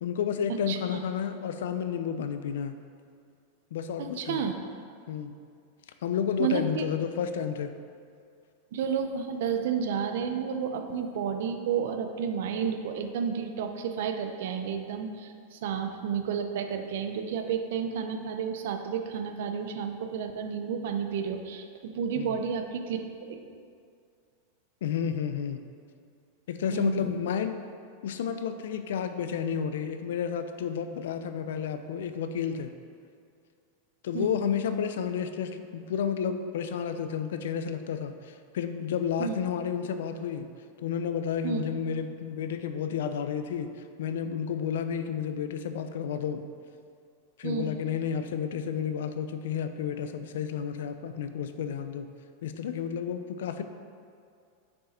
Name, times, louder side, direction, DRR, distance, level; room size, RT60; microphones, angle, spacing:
voice 1, 0.0-2.8 3.7-4.4 5.1-5.3 6.0-7.7 22.2-22.4 24.8-25.6 26.5-27.5 28.0-32.7 34.0-40.5 40.8-43.7 44.0-46.5 47.4-52.1 52.4-53.6, left 7 dB, 80° left, 9 dB, 0.4 m, -31 dB
voice 2, 4.0-4.5 6.4-6.8 8.7-23.6 26.7-27.2 34.1-34.4 39.2-39.4 41.4-41.6 47.4-47.7, right 7 dB, 70° right, 6 dB, 0.6 m, -31 dB
6.3 x 4.7 x 4.3 m, 2.3 s
supercardioid pair, 135°, 0 cm